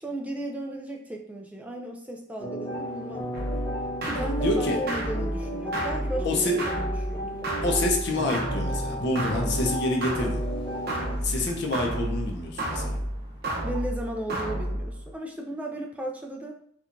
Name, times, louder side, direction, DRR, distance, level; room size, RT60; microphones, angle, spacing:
voice 1, 0.0-3.6 4.0-7.4 13.6-16.5, right 1 dB, 10° right, 1 dB, 0.3 m, -35 dB
sound 1, 2.4-11.2, equal, 25° left, 0.9 m, -33 dB
sound 2, 2.7-14.0, right 2 dB, 25° right, 0.8 m, -49 dB
sound 3, 3.3-15.1, right 1 dB, 55° right, 0.8 m, -32 dB
voice 2, 4.4-4.8 6.2-6.6 7.6-10.4 11.2-13.0, left 2 dB, 60° left, 1 dB, 0.7 m, -27 dB
4.4 x 2.3 x 2.5 m, 0.64 s
head